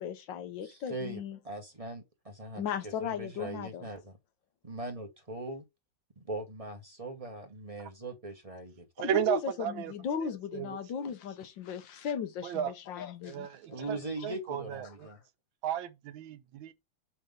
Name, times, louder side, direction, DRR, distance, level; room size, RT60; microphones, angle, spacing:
voice 1, 0.0-1.4 2.6-3.9 9.0-13.5 13.8-13.9, left 8 dB, 70° left, 1.5 m, -37 dB
voice 2, 0.6-1.2 1.4-2.6 3.0-4.2 4.6-5.6 6.2-8.8 13.7-15.2, right 2 dB, 25° right, 0.8 m, -40 dB
voice 3, 9.0-9.9 10.2-10.7 12.4-12.7 13.2-14.0 14.2-15.1 15.6-16.7, right 10 dB, 85° right, 1.5 m, -34 dB
5.6 x 3.4 x 5.2 m
omnidirectional pair, 2.2 m